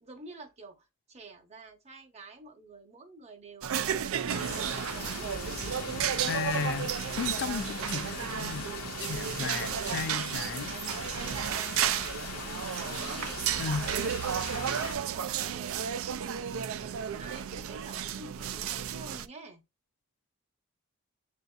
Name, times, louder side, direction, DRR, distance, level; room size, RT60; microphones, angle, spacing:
voice 1, 0.0-5.3 10.5-13.4 15.0-19.6, right 3 dB, 30° right, 0.9 m, -49 dB
sound 1, 3.6-19.3, right 9 dB, 65° right, 0.4 m, -33 dB
sound 2, 4.3-14.9, left 4 dB, 80° left, 1.0 m, -40 dB
voice 2, 6.2-8.7 9.0-10.7 13.6-13.9, left 6 dB, 50° left, 0.3 m, -34 dB
7.9 x 2.7 x 2.3 m
head